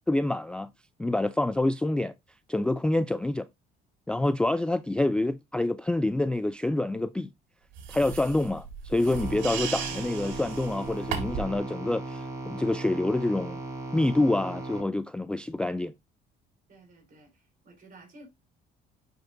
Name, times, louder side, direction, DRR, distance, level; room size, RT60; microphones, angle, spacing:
voice 1, 0.1-0.7 1.0-2.1 2.5-3.5 4.1-7.3 7.9-13.6 13.9-15.9, left 2 dB, 5° left, 0.3 m, -27 dB
sound 1, 7.8-11.6, right 6 dB, 80° right, 2.2 m, -36 dB
sound 2, 9.1-14.8, right 2 dB, 15° right, 3.3 m, -37 dB
voice 2, 16.7-18.3, right 2 dB, 45° right, 4.4 m, -53 dB
10.5 x 5.2 x 2.6 m
cardioid pair, 95°, 19 cm